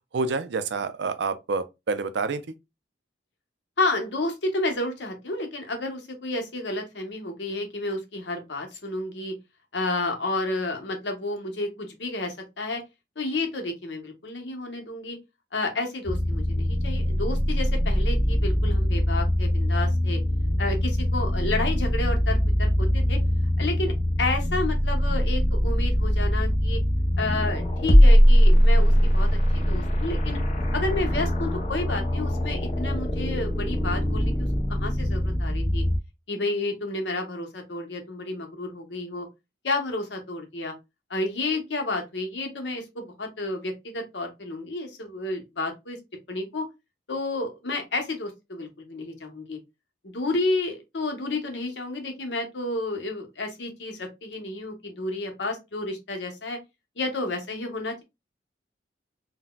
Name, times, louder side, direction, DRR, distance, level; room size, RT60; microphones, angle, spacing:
voice 1, 0.1-2.4, right 4 dB, 70° right, 0.4 m, -28 dB
voice 2, 3.8-9.3 9.7-12.8 13.2-15.2 15.5-20.2 20.6-23.2 23.6-23.9 24.2-26.8 27.2-29.3 29.5-30.4 30.7-35.8 36.3-39.3 39.6-40.7 41.1-46.0 46.3-46.7 47.1-49.6 50.0-56.6 57.0-58.0, left 2 dB, 75° left, 0.9 m, -31 dB
sound 1, 16.1-36.0, equal, 40° left, 0.6 m, -22 dB
3.9 x 2.1 x 2.2 m
head